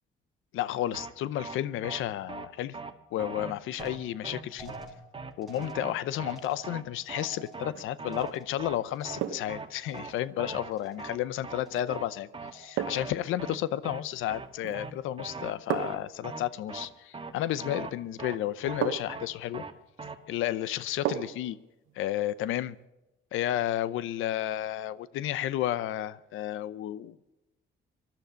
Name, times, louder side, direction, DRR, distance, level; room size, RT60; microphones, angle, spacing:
voice 1, 0.5-2.8 3.1-4.7 5.4-19.6 20.3-21.6 22.0-22.8 23.3-27.2, left 12 dB, 85° left, 0.7 m, -32 dB
sound 1, 0.9-1.1 1.4-1.6 1.8-2.0 2.3-2.5 2.7-2.9 3.2-3.5 3.8-4.0 4.2-4.4 4.7-4.9 5.1-5.3 5.6-5.9 6.2-6.4 6.6-6.8 7.1-7.3 7.5-7.7 8.0-8.3 8.6-8.8 9.0-9.2 9.5-9.7 9.9-10.1 10.4-10.7 11.0-11.2 11.4-11.6 11.9-12.1 12.3-12.5 12.8-13.1 13.4-13.6 13.8-14.0 14.3-14.5 14.7-14.9 15.2-15.5 15.8-16.0 16.2-16.4 16.7-16.9 17.1-17.3 17.6-17.9 18.2-18.4 18.6-18.8 19.1-19.3 19.5-19.7 20.0-20.1, right 4 dB, 25° right, 1.7 m, -40 dB
sound 2, 3.8-9.6 9.8-10.4 10.7-11.3 11.6-12.1 12.5-13.0, right 2 dB, ahead, 4.8 m, -50 dB
sound 3, 7.6-8.0 9.2-9.6 11.7-11.9 12.8-13.2 14.6-15.0 15.7-16.1 17.8-17.9 18.8-19.3 21.1-21.5 21.9-22.0, right 11 dB, 85° right, 1.1 m, -34 dB
19.0 x 12.0 x 6.3 m
cardioid pair, 90°, 20 cm